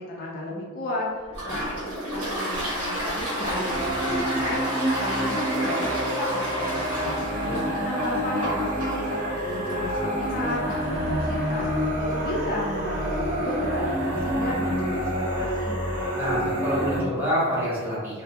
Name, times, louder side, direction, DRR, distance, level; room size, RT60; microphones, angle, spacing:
voice 1, 0.0-5.9 6.2-7.2 7.7-11.7 12.1-15.8, left 1 dB, 45° left, -3 dB, 0.4 m, -34 dB
Toilet flush, 1.3-14.7, right 1 dB, 85° right, 1.0 m, -33 dB
sound 1, 3.3-17.0, equal, 40° right, 0.6 m, -27 dB
voice 2, 16.1-18.2, equal, 10° right, -9 dB, 0.8 m, -27 dB
2.2 x 2.2 x 2.6 m, 1.4 s
head